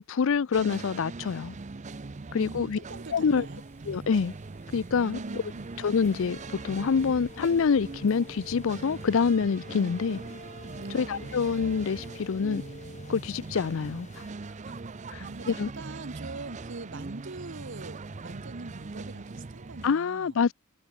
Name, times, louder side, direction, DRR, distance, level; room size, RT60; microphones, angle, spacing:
voice 1, 0.0-1.5 2.3-2.8 3.1-3.5 3.9-4.3 4.7-5.4 5.8-6.4 6.6-10.2 10.9-12.6 13.1-14.1 15.1-15.7 19.8-20.5, left 5 dB, 60° left, 0.4 m, -26 dB
sound 1, 0.5-19.9, right 3 dB, 35° right, 0.6 m, -41 dB
voice 2, 2.4-3.6 4.9-5.8 10.7-11.1 15.2-20.4, right 3 dB, 55° right, 1.1 m, -43 dB
sound 2, 2.9-9.2, left 1 dB, 10° left, 3.7 m, -60 dB
sound 3, 5.9-14.3, left 2 dB, 35° left, 2.1 m, -48 dB
head